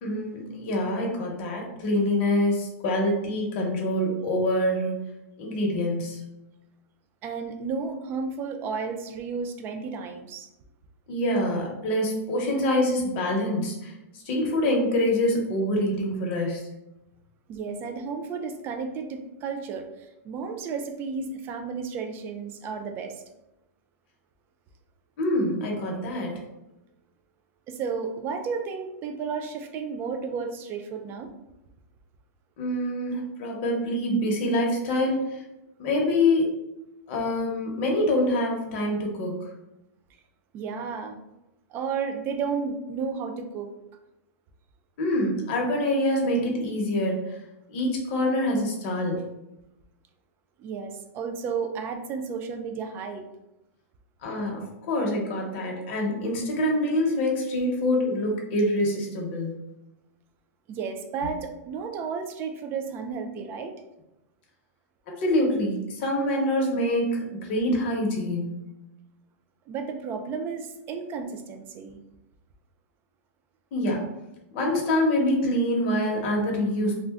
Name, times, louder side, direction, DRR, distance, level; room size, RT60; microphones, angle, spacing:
voice 1, 0.0-5.0 5.4-6.2 11.1-13.9 14.3-16.6 25.2-26.3 32.6-35.2 35.8-36.5 37.1-39.4 45.0-47.2 47.7-49.2 54.2-59.6 65.1-68.5 73.7-74.0 74.5-76.9, left 1 dB, 45° left, 0 dB, 0.9 m, -25 dB
voice 2, 7.2-10.5 17.5-19.9 20.2-23.2 27.7-31.3 40.5-41.2 41.7-43.7 50.6-53.3 60.7-63.8 69.7-72.0, right 5 dB, 25° right, 5 dB, 0.3 m, -32 dB
2.5 x 2.2 x 3.4 m, 0.92 s
supercardioid pair, 150°, 8 cm